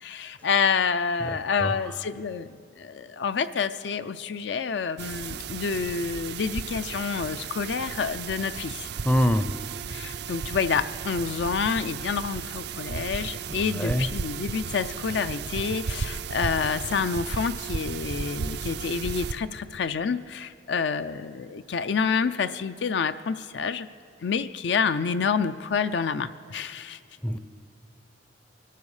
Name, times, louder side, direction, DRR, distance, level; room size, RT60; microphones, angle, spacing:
voice 1, 0.0-2.5 2.8-8.9 9.9-23.9 24.2-27.0, left 5 dB, 65° left, 11 dB, 0.4 m, -28 dB
voice 2, 1.2-1.7 9.0-9.6 13.6-14.1 27.2-27.4, equal, 10° left, 10 dB, 0.5 m, -25 dB
sound 1, 5.0-19.3, right 6 dB, 60° right, 0.4 m, -34 dB
23.5 x 12.5 x 4.9 m, 2.2 s
head